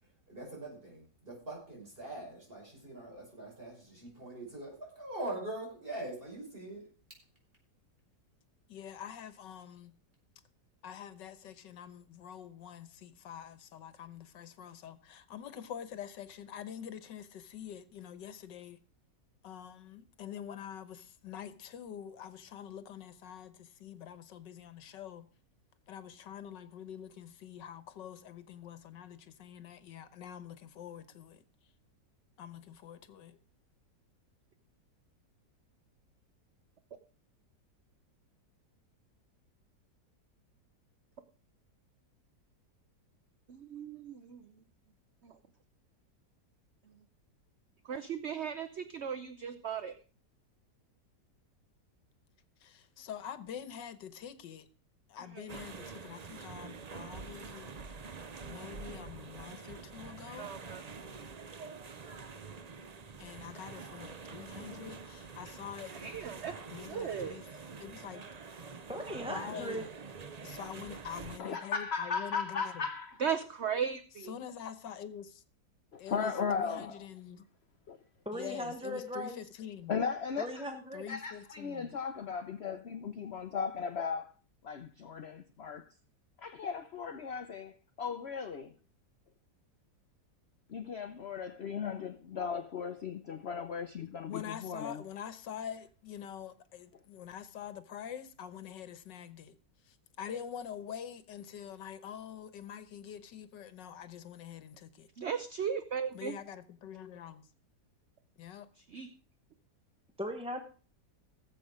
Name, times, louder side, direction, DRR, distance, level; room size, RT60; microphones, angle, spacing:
voice 1, 0.0-6.9, right 1 dB, 30° right, 6.0 m, -43 dB
voice 2, 8.7-9.9 10.8-18.8 19.4-25.3 25.9-31.4 32.4-33.4 52.6-54.7 55.1-57.7 58.5-60.6 63.2-65.9 66.7-67.4 67.8-68.2 69.3-69.9 70.4-72.9 74.3-75.4 76.0-77.5 78.3-80.0 80.9-82.0 94.3-99.6 99.8-105.1 106.1-107.5 108.4-108.7, left 9 dB, 85° left, 1.7 m, -45 dB
voice 3, 43.5-44.5 45.2-45.4 47.8-50.0 55.3-55.6 60.3-60.8 65.9-66.5 66.9-67.4 73.2-74.4 105.2-106.3 108.8-109.1, right 7 dB, 50° right, 0.9 m, -37 dB
sound 1, 55.5-71.4, right 4 dB, 70° right, 0.3 m, -46 dB
voice 4, 68.9-69.8 78.2-79.4 80.4-81.0 110.2-110.6, equal, 5° right, 0.8 m, -38 dB
voice 5, 71.4-73.2 75.9-77.1 77.9-78.0 79.9-80.7 81.1-84.3 84.6-85.9 86.4-87.7 88.0-88.7 90.7-95.0, left 6 dB, 50° left, 0.8 m, -36 dB
17.0 x 7.8 x 5.0 m
omnidirectional pair, 1.9 m